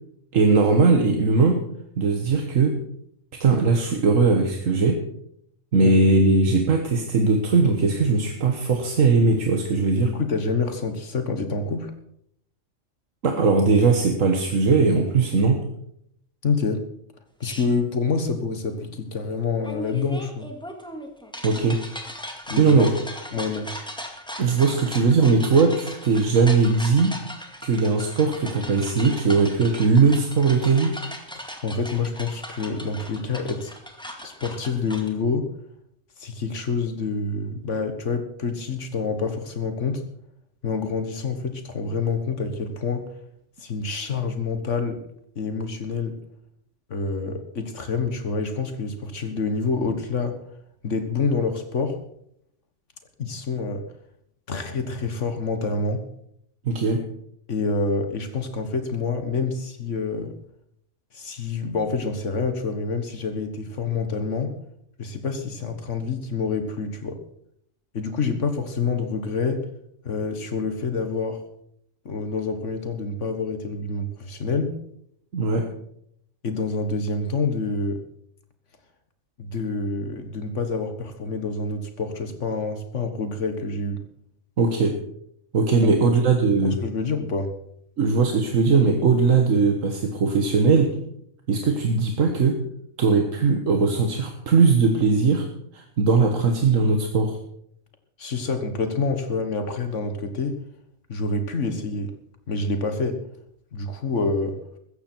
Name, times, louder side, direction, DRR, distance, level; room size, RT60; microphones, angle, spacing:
voice 1, 0.3-1.6 2.0-2.8 3.3-5.0 5.7-10.1 13.2-15.6 21.4-21.8 22.6-22.9 24.4-27.2 27.6-31.0 56.7-57.0 75.3-75.7 84.6-85.0 85.5-86.8 88.0-91.0 91.5-92.6 93.0-95.5 95.7-97.4, right 4 dB, 85° right, 4 dB, 1.7 m, -19 dB
voice 2, 10.1-11.9 16.4-16.8 17.4-20.5 22.5-22.9 23.3-23.7 31.4-33.8 34.2-35.5 36.2-40.0 40.6-43.1 43.6-45.0 45.4-46.2 46.9-50.4 50.8-52.0 53.2-53.8 54.5-56.0 57.5-60.3 61.1-64.5 65.0-67.2 67.9-69.6 70.0-71.4 72.1-74.7 76.4-78.0 79.4-84.0 85.8-85.9 86.6-87.5 98.2-100.6 101.1-102.1 102.5-103.2 103.7-104.6, left 4 dB, 70° left, 7 dB, 1.8 m, -27 dB
sound 1, 17.4-17.7 19.6-35.1, equal, 5° left, 2.1 m, -38 dB
16.0 x 14.0 x 4.5 m, 0.71 s
omnidirectional pair, 1.3 m